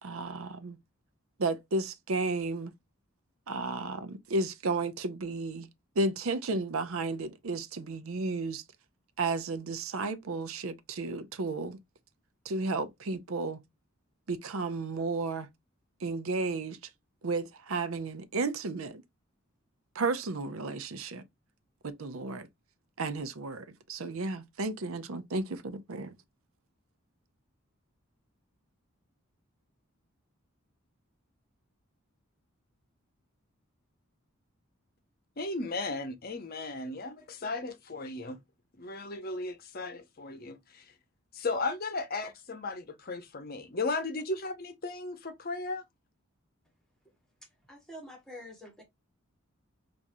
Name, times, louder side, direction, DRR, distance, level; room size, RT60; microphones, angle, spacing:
voice 1, 0.0-0.8 1.4-2.7 3.5-5.7 6.0-8.6 9.2-11.8 12.4-13.6 14.3-15.5 16.0-16.8 17.2-19.0 19.9-21.2 21.8-22.5 23.0-26.2, right 3 dB, 75° right, 0.6 m, -33 dB
voice 2, 35.4-38.4 38.8-40.9 41.3-45.8, left 3 dB, 45° left, 0.8 m, -35 dB
voice 3, 47.7-48.8, equal, ahead, 1.5 m, -46 dB
4.6 x 2.6 x 2.6 m
head